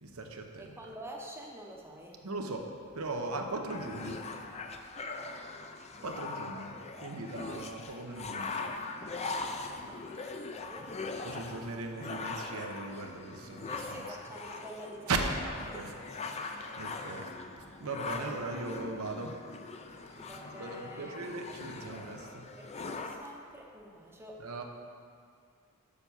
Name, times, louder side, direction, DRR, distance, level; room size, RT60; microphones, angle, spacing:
voice 1, 0.0-0.8 2.2-2.6 2.9-4.2 6.0-6.7 7.0-8.6 11.2-14.1 15.1-17.3 17.8-19.3 20.6-22.4 24.4-24.6, right 3 dB, 85° right, 4 dB, 0.9 m, -38 dB
voice 2, 0.6-2.2 4.0-4.1 5.3-5.5 9.7-10.9 13.6-15.1 17.8-18.7 20.2-21.2 22.2-24.4, equal, 10° right, -1 dB, 0.7 m, -48 dB
sound 1, 3.7-23.1, left 3 dB, 30° left, 0.4 m, -41 dB
6.9 x 5.9 x 6.8 m, 2.3 s
head